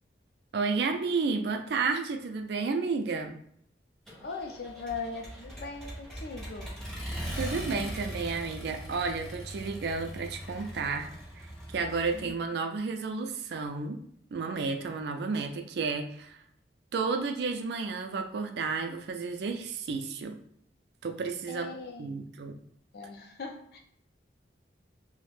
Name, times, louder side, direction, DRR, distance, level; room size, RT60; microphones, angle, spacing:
voice 1, 0.5-3.4 7.3-11.1 11.4-11.5 11.7-14.0 14.3-16.4 16.9-20.4 21.0-21.7 22.0-22.6, right 4 dB, 65° right, 5 dB, 0.3 m, -32 dB
Accelerating revving vroom, 4.1-12.3, equal, 5° left, 0.5 m, -40 dB
voice 2, 4.2-6.7 12.1-12.5 21.5-22.3 22.9-23.8, left 4 dB, 60° left, 3 dB, 0.4 m, -40 dB
2.4 x 2.1 x 3.1 m, 0.68 s
head